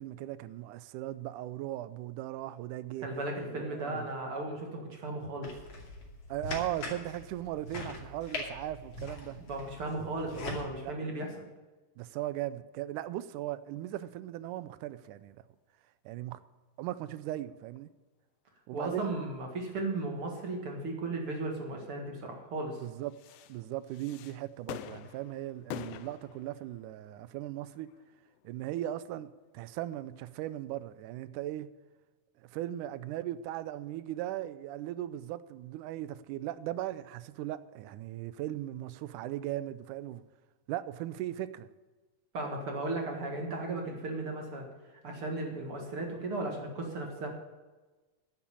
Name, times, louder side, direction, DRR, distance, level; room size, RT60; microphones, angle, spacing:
voice 1, 0.0-3.1 3.5-4.1 6.3-9.4 10.8-11.0 12.0-15.4 16.1-16.4 16.8-17.9 18.7-19.1 22.8-23.2 23.5-27.9 28.4-31.7 32.4-40.2 40.7-41.7, right 13 dB, 85° right, 2.1 m, -38 dB
voice 2, 3.0-5.5 9.5-11.3 18.7-22.8 42.3-44.7 45.0-47.3, right 2 dB, 50° right, 2.5 m, -36 dB
sound 1, 5.4-10.6, left 3 dB, 55° left, 3.4 m, -42 dB
sound 2, 15.0-15.1 17.8-17.9 20.6-20.7 23.0-30.1 30.7-30.9, left 12 dB, 85° left, 2.1 m, -48 dB
11.5 x 7.1 x 8.5 m
omnidirectional pair, 3.5 m